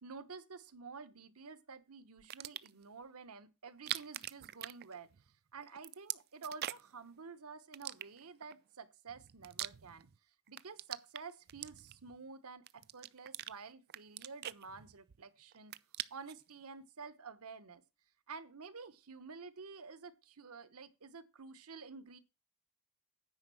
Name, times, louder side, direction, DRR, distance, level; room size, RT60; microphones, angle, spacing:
voice 1, 0.0-5.1 5.5-10.1 10.5-15.7 16.1-17.8 18.3-22.2, right 5 dB, 75° right, 1.1 m, -50 dB
sound 1, 2.2-2.8 3.7-5.3 5.6-7.0 7.7-8.5 9.1-10.2 10.5-12.2 12.7-13.5 13.9-15.2 15.5-16.4, right 13 dB, 45° right, 0.4 m, -43 dB
9.5 x 5.3 x 6.2 m
head